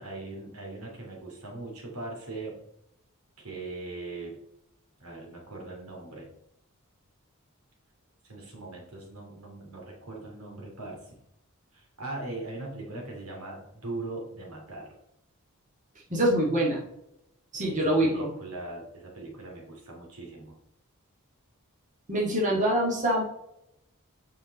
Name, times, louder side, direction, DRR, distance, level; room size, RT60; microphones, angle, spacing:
voice 1, 0.0-2.6 3.4-4.4 5.0-6.3 8.2-11.1 11.7-14.9 17.5-20.6, right 2 dB, 85° right, -1 dB, 2.7 m, -40 dB
voice 2, 16.1-16.8 17.5-18.3 22.1-23.2, right 1 dB, 35° right, -3 dB, 1.9 m, -25 dB
7.9 x 5.4 x 4.0 m, 0.82 s
head